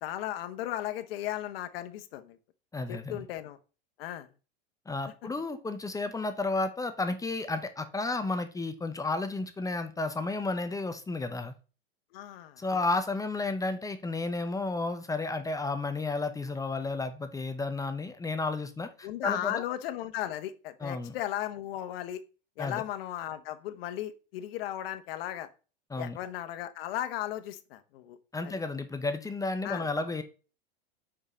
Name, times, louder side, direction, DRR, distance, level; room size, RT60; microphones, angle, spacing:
voice 1, 0.0-2.4 2.9-3.6 4.0-4.3 12.1-12.6 19.0-22.2 22.6-25.5 26.0-28.2 28.4-28.5 29.6-29.9, left 12 dB, 65° left, 10 dB, 1.1 m, -36 dB
voice 2, 2.7-3.2 4.9-11.5 12.6-19.6 20.8-21.1 22.6-22.8 25.9-26.2 28.3-30.2, left 3 dB, 10° left, 9 dB, 0.7 m, -32 dB
5.4 x 5.0 x 6.1 m, 0.35 s
hypercardioid pair, 115°, 31 cm